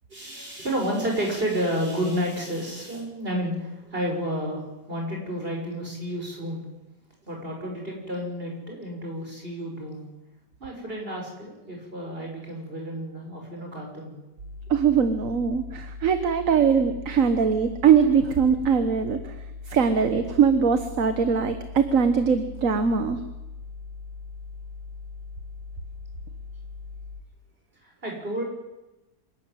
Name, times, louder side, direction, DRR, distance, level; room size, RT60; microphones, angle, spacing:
voice 1, 0.1-6.6 7.2-10.1 10.6-14.2 27.8-28.4, equal, 35° right, 0 dB, 6.5 m, -31 dB
sound 1, 14.4-27.2, left 4 dB, 80° right, 2.1 m, -40 dB
voice 2, 14.7-19.3 19.7-23.2, right 6 dB, 55° right, 9 dB, 1.6 m, -21 dB
26.5 x 12.5 x 9.2 m, 1.0 s
omnidirectional pair, 1.8 m